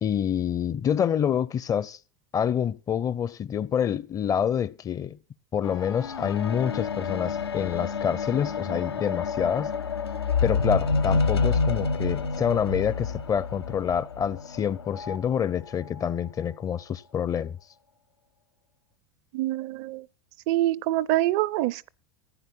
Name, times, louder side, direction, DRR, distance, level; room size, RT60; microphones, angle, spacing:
voice 1, 0.0-2.0 2.3-5.2 5.5-9.7 10.4-17.6, left 8 dB, 25° left, 0.5 m, -27 dB
sound 1, 5.6-15.2 16.0-16.1, left 4 dB, 85° left, 0.6 m, -28 dB
voice 2, 19.3-20.0 20.5-21.9, right 15 dB, 55° right, 0.5 m, -25 dB
15.0 x 9.5 x 4.4 m
hypercardioid pair, 85°, 13 cm